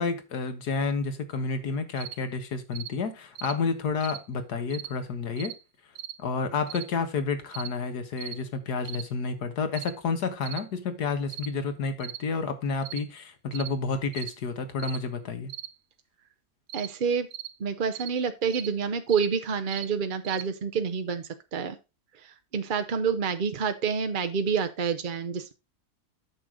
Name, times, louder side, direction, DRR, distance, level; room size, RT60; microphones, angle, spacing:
voice 1, 0.0-5.5 6.2-15.5, left 4 dB, 75° left, 1.9 m, -30 dB
sound 1, 2.0-2.2 2.7-2.9 3.4-3.6 4.0-4.2 4.7-4.9 5.4-5.6 6.0-6.2 6.7-6.9 7.5-7.7 8.2-8.4 8.8-9.1 9.7-10.0 10.4-10.7 11.3-11.5 12.0-12.2 12.8-13.0 13.5-13.7 14.1-14.4 14.8-15.0 15.5-15.7 16.7-16.9 17.3-17.5 17.9-18.1 18.5-18.7 19.1-19.3 19.7-19.9 20.2-20.5, right 11 dB, 70° right, 1.2 m, -39 dB
voice 2, 16.7-17.3 17.6-21.7 22.5-25.5, right 6 dB, 50° right, 0.6 m, -28 dB
8.9 x 6.4 x 3.7 m
omnidirectional pair, 1.7 m